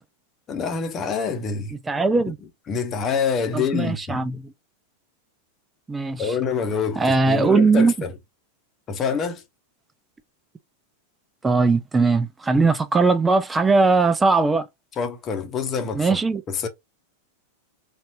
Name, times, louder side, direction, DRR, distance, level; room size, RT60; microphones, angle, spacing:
voice 1, 0.5-1.8 2.7-4.2 6.2-8.1 8.9-9.4 15.0-16.1 16.5-16.7, left 6 dB, 25° left, 1.0 m, -26 dB
voice 2, 1.9-2.4 3.5-4.5 5.9-6.3 7.0-7.9 11.4-14.7 15.9-16.4, right 3 dB, 15° right, 0.6 m, -19 dB
4.3 x 2.6 x 2.7 m
figure-of-eight pair, 90°, 0 cm